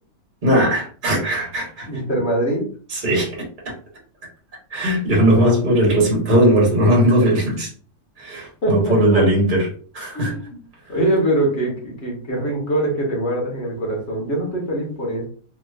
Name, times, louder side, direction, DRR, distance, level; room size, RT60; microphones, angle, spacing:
voice 1, 0.4-1.9 2.9-3.7 4.7-7.7 8.2-9.7 9.9-10.3, right 1 dB, 35° right, -3 dB, 1.3 m, -18 dB
voice 2, 1.9-2.7 8.6-9.3 10.1-10.6 10.9-15.3, right 1 dB, 50° left, -2 dB, 1.2 m, -23 dB
3.0 x 2.9 x 2.4 m, 0.43 s
omnidirectional pair, 1.6 m